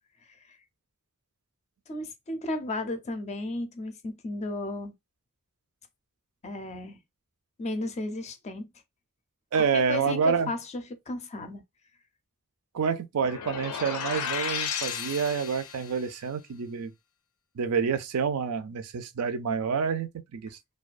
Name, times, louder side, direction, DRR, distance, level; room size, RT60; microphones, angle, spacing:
voice 1, 1.9-4.9 6.4-7.0 7.6-8.7 9.7-11.6, left 2 dB, 30° left, 0.4 m, -34 dB
voice 2, 9.5-10.5 12.7-16.9 17.6-20.5, right 6 dB, 80° right, 0.4 m, -28 dB
sound 1, 13.2-16.0, left 7 dB, 85° left, 0.5 m, -33 dB
2.3 x 2.2 x 2.4 m
head